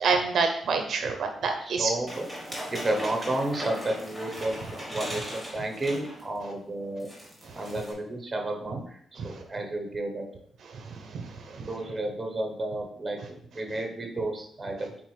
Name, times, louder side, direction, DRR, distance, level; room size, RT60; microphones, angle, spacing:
voice 1, 0.0-1.9 11.1-11.3 11.6-11.7, right 4 dB, 55° right, 5 dB, 0.6 m, -26 dB
voice 2, 1.6-2.3 2.7-5.2 5.5-7.1 7.5-10.2 11.5-15.0, right 2 dB, 15° right, 3 dB, 0.9 m, -32 dB
sound 1, 2.1-6.3 6.6-6.7 7.0-7.9, equal, 5° left, 1.8 m, -38 dB
8.4 x 3.8 x 3.2 m, 0.67 s
wide cardioid pair, 180°, 0 cm